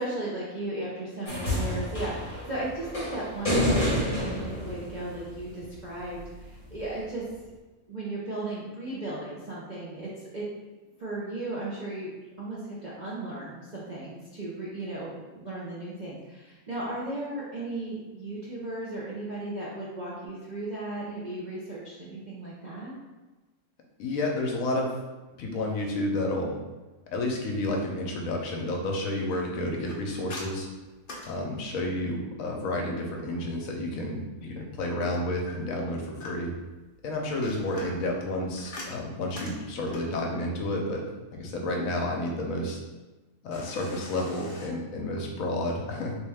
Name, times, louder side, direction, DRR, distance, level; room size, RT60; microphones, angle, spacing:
voice 1, 0.0-7.3 7.9-10.5 11.0-12.1 12.4-23.0, right 2 dB, 50° right, -8 dB, 0.5 m, -36 dB
sound 1, 1.3-5.6 6.8-6.9, equal, 25° left, 1.1 m, -29 dB
voice 2, 24.0-24.9 25.4-26.6 27.1-30.7 31.2-36.5 37.0-41.0 41.3-42.8 43.4-46.2, left 1 dB, 70° left, 0 dB, 1.0 m, -30 dB
sound 2, 29.9-32.1 35.5-36.7 37.2-40.2 43.5-44.7, left 2 dB, 45° left, 0.7 m, -44 dB
3.1 x 3.1 x 3.4 m, 1.2 s
omnidirectional pair, 1.6 m